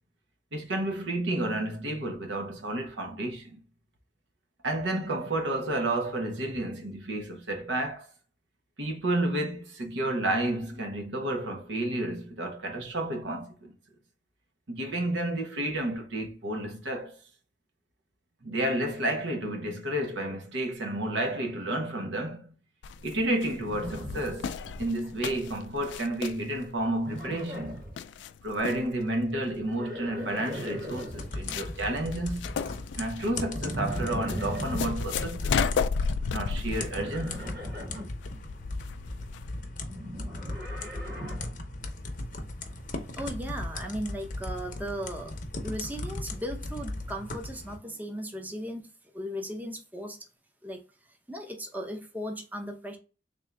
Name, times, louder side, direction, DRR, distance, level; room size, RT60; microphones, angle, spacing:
voice 1, 0.5-3.6 4.6-8.1 8.8-13.7 14.7-17.2 18.4-22.5 23.0-27.8 28.4-32.6 33.0-35.6 36.3-37.6, right 1 dB, 80° right, 1.0 m, -31 dB
sound 1, 22.8-39.6, left 6 dB, 75° left, 0.3 m, -34 dB
Livestock farm animals working animals, 23.6-24.9 25.1-25.7 27.0-28.0 29.5-31.3 33.6-35.0 36.9-38.1 39.9-41.6, equal, 55° right, 1.8 m, -38 dB
sound 2, 31.1-47.8, left 2 dB, 45° left, 0.7 m, -38 dB
voice 2, 43.1-50.3 50.6-50.8 51.3-53.0, equal, 10° right, 0.6 m, -37 dB
3.6 x 2.6 x 3.3 m
head